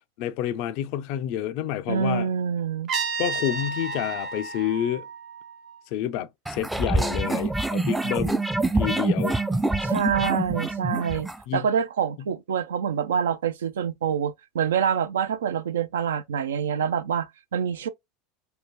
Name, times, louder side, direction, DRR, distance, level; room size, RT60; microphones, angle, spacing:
voice 1, 0.2-2.3 3.2-5.1 5.9-8.4 8.7-9.4 11.5-11.7, left 11 dB, 60° left, 0.4 m, -29 dB
voice 2, 1.9-2.9 9.8-11.3 11.5-17.9, right 7 dB, 80° right, 0.4 m, -26 dB
Trumpet, 2.9-5.8, right 4 dB, 45° right, 1.0 m, -32 dB
sound 1, 6.5-11.4, right 2 dB, 5° right, 0.4 m, -25 dB
2.7 x 2.2 x 3.2 m
hypercardioid pair, 85°, 0 cm